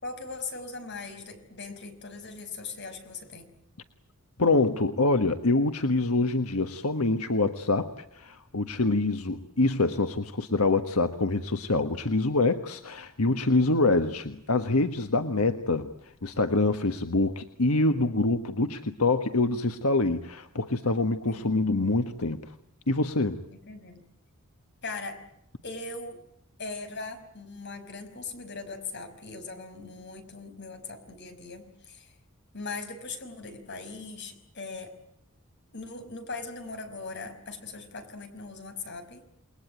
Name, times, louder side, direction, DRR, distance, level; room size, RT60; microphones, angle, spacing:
voice 1, 0.0-3.5 21.2-21.7 23.5-24.0 24.8-25.2 25.6-26.2 26.6-32.2 32.5-34.9 35.7-39.3, left 3 dB, 55° left, 7 dB, 5.4 m, -40 dB
voice 2, 4.4-15.9 16.2-22.4 22.9-23.4, left 2 dB, 85° left, 8 dB, 1.4 m, -25 dB
29.0 x 21.0 x 9.1 m, 0.76 s
head